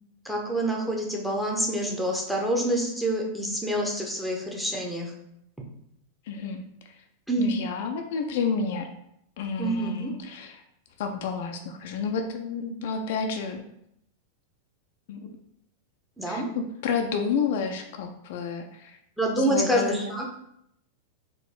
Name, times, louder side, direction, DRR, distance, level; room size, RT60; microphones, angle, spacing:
voice 1, 0.2-5.1 7.3-7.5 9.6-10.1 16.2-16.5 19.2-20.2, right 1 dB, ahead, -1 dB, 0.8 m, -27 dB
voice 2, 6.3-6.6 7.4-8.9 9.4-10.6 11.0-13.6 15.1-15.3 16.3-19.0 19.4-20.2, left 5 dB, 55° left, 4 dB, 0.4 m, -30 dB
3.8 x 2.7 x 3.7 m, 0.76 s
figure-of-eight pair, 90°, 0 cm